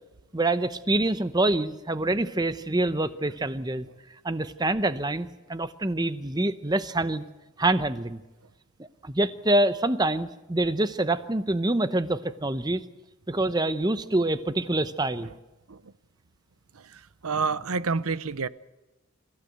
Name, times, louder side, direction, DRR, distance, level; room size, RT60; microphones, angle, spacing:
voice 1, 0.3-3.9 4.2-7.2 7.6-8.2 9.0-12.8 13.3-15.3, right 2 dB, 20° right, 0.8 m, -26 dB
voice 2, 16.7-18.5, right 4 dB, 80° right, 0.8 m, -29 dB
28.5 x 15.0 x 8.0 m
head